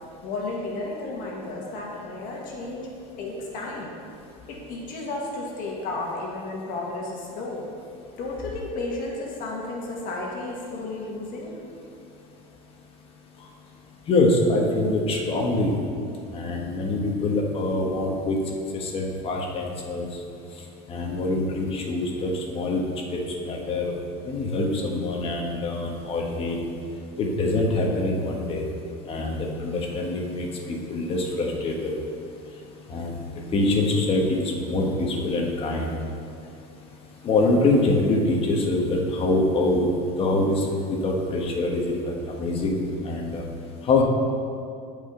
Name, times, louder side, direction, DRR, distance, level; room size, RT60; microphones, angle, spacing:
voice 1, 0.2-2.9 3.2-3.9 4.5-7.6 8.2-11.6, left 2 dB, 50° left, -2 dB, 1.8 m, -33 dB
voice 2, 14.1-15.7 16.3-18.4 18.7-20.1 20.9-22.8 23.1-23.8 24.2-26.6 27.2-28.6 29.1-31.9 32.9-33.2 33.5-36.0 37.2-39.9 40.2-43.4 43.8-44.0, left 2 dB, 30° left, 0 dB, 1.5 m, -24 dB
15.5 x 5.2 x 3.9 m, 2.5 s
supercardioid pair, 135°, 18 cm